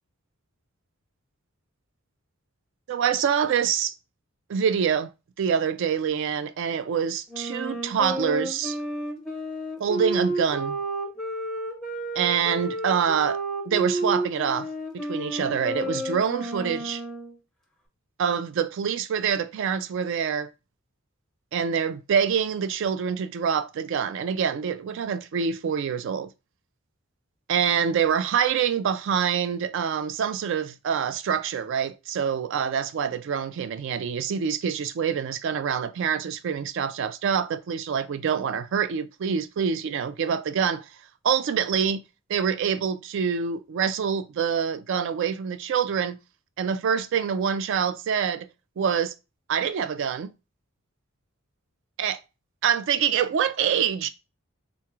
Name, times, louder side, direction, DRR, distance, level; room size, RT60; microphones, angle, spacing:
voice 1, 2.9-3.9 4.5-5.1 5.4-8.8 9.8-10.8 12.2-17.0 18.2-20.5 21.5-26.3 27.5-40.9 41.2-42.0 42.3-46.2 46.6-48.5 48.8-49.1 49.5-50.3 52.0-52.2 52.6-54.1, right 7 dB, 60° right, 0.3 m, -26 dB
Wind instrument woodwind instrument, 7.3-17.3, right 1 dB, ahead, 0.6 m, -31 dB
3.3 x 3.0 x 2.3 m
head